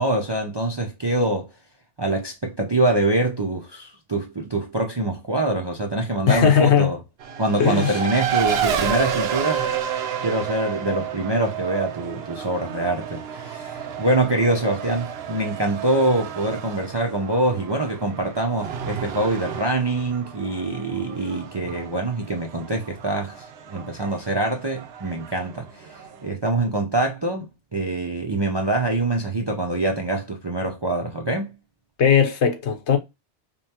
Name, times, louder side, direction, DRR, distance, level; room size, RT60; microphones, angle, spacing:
voice 1, 0.0-1.5 2.0-7.0 7.4-9.7 10.2-31.6, right 2 dB, 35° right, 0.4 m, -24 dB
voice 2, 6.3-6.9 7.6-8.0 32.0-33.0, left 7 dB, 70° left, 1.1 m, -18 dB
Race car auto racing, 7.2-26.3, right 8 dB, 65° right, 0.8 m, -31 dB
5.2 x 2.2 x 2.8 m
omnidirectional pair, 1.2 m